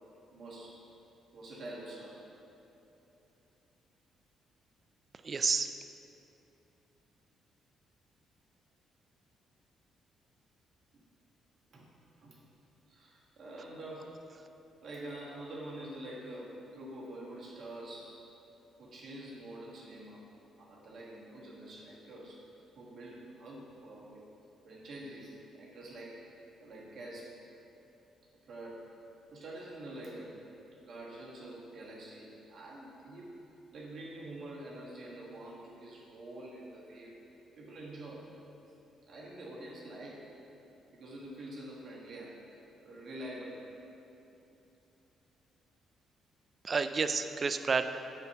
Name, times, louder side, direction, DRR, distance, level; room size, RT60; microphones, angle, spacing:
voice 1, 0.3-0.8 1.3-2.2 11.7-11.9 12.2-12.4 12.9-14.2 14.8-18.3 18.8-20.3 20.6-22.5 22.7-24.2 24.6-26.3 26.6-27.3 28.4-29.0 29.3-30.4 30.8-33.4 33.7-37.2 37.6-38.3 39.1-40.4 40.9-42.4 42.8-43.7, right 1 dB, 55° right, -5 dB, 1.4 m, -46 dB
voice 2, 5.2-5.7 46.6-47.8, right 5 dB, 40° right, 9 dB, 0.3 m, -30 dB
7.7 x 2.9 x 5.5 m, 2.9 s
cardioid pair, 90°, 0 cm